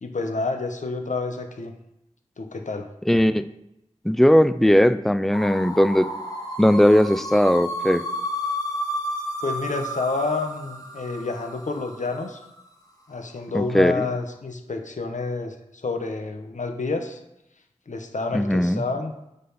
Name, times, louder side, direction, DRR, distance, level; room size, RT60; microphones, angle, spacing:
voice 1, 0.0-1.7 2.4-2.9 9.4-12.4 13.1-17.2 17.9-19.1, left 3 dB, 85° left, 5 dB, 0.9 m, -29 dB
voice 2, 3.1-3.5 4.1-6.1 6.6-8.0 13.5-14.1 18.3-18.8, equal, ahead, 13 dB, 0.3 m, -18 dB
sound 1, 5.3-12.3, equal, 30° left, 1.3 m, -31 dB
8.5 x 4.1 x 5.5 m, 0.86 s
wide cardioid pair, 65°, 12 cm